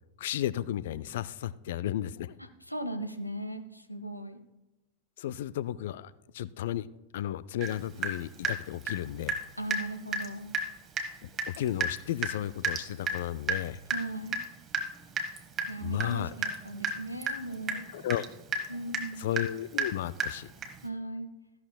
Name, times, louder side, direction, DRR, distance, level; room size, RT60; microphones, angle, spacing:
voice 1, 0.2-2.4 5.2-6.9 7.1-9.4 11.2-13.8 15.8-16.3 17.9-18.3 19.2-20.5, left 12 dB, 55° left, 19 dB, 0.3 m, -33 dB
voice 2, 2.4-4.4 9.6-10.6 13.9-14.4 15.7-17.9 18.7-19.3 20.8-21.3, right 1 dB, 85° left, 9 dB, 0.7 m, -38 dB
Water tap faucet / Drip, 7.6-7.7 8.0-9.4 9.7-9.9 10.1-10.3 10.5-10.7 11.0-11.1 11.4-20.9, right 3 dB, 25° right, 1.1 m, -33 dB
14.0 x 11.0 x 2.2 m, 0.97 s
figure-of-eight pair, 90°, 0 cm